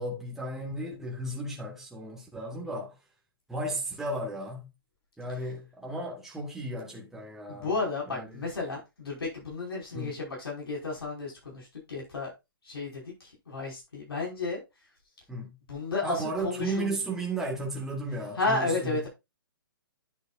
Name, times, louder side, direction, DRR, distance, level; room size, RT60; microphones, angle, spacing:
voice 1, 0.0-2.9 3.5-4.7 5.2-7.7 8.1-8.4 9.9-10.2 15.3-15.5 16.0-19.0, right 1 dB, 5° right, 2.0 m, -34 dB
voice 2, 7.5-12.3 12.6-14.6 15.7-16.9 18.4-19.1, left 3 dB, 85° left, 5.6 m, -32 dB
10.0 x 7.8 x 2.6 m
hypercardioid pair, 140°, 12 cm